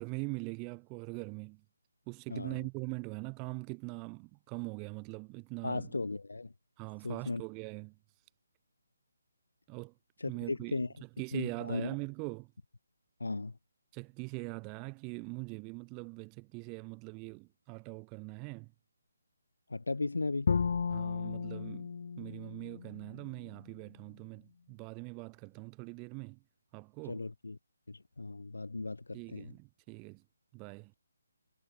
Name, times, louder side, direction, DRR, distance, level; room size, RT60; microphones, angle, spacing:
voice 1, 0.0-1.6 2.1-5.9 6.8-8.0 9.7-9.9 10.2-12.5 13.9-18.7 20.9-21.9 22.2-26.4 26.7-27.2 29.1-30.2 30.5-30.9, right 33 dB, 20° right, 1.4 m, -42 dB
voice 2, 5.6-6.5 7.0-7.4 10.2-10.9 11.3-11.9 13.2-13.5 19.7-20.5 27.1-27.6 27.9-29.5, left 3 dB, 80° left, 2.1 m, -36 dB
Bowed string instrument, 20.5-23.6, left 5 dB, 55° left, 2.1 m, -34 dB
figure-of-eight pair, 150°, 0 cm